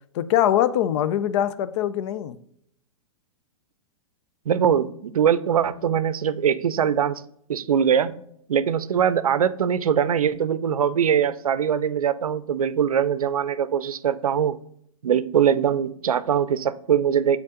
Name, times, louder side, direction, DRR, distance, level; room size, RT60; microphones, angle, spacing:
voice 1, 0.1-2.4, left 11 dB, 55° left, 0.5 m, -22 dB
voice 2, 4.5-7.2 7.5-8.2 8.5-14.6 15.0-17.4, right 8 dB, 90° right, 0.5 m, -22 dB
8.6 x 3.7 x 3.7 m
hypercardioid pair, 120°, 18 cm